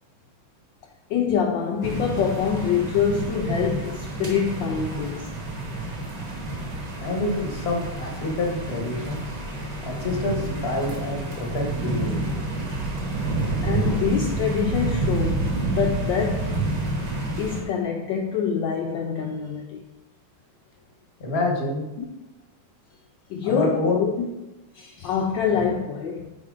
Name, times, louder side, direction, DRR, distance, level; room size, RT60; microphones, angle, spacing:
voice 1, 1.1-5.3 13.6-16.6 17.4-19.8 22.0-22.1 23.3-24.3 24.7-26.5, left 6 dB, 75° left, 1.2 m, -25 dB
sound 1, 1.8-17.6, right 2 dB, 45° right, 1.9 m, -29 dB
voice 2, 7.0-9.4 9.8-12.3 21.2-21.9 23.4-24.0 25.5-25.6, left 2 dB, 35° left, 1.3 m, -27 dB
9.8 x 4.5 x 3.7 m
omnidirectional pair, 2.4 m